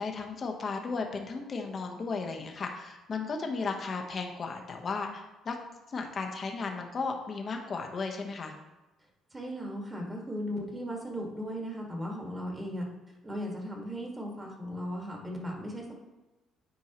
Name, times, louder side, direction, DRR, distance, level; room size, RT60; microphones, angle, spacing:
voice 1, 0.0-5.6 5.9-8.5, left 4 dB, 40° left, 3 dB, 1.0 m, -35 dB
voice 2, 9.3-12.9 13.2-15.9, equal, 20° right, -1 dB, 1.7 m, -37 dB
9.5 x 4.5 x 3.0 m, 1.1 s
cardioid pair, 95°, 0 cm